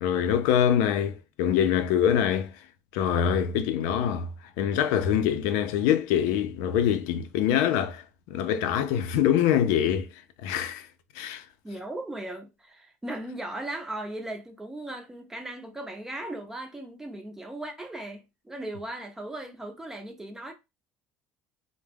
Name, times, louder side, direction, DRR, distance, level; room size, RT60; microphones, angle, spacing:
voice 1, 0.0-2.5 2.9-4.3 4.6-10.1 10.4-10.9 11.1-11.4, left 9 dB, 90° left, 0.4 m, -24 dB
voice 2, 11.6-20.5, right 1 dB, 10° right, 0.4 m, -37 dB
2.2 x 2.0 x 3.3 m
cardioid pair, 145°, 6 cm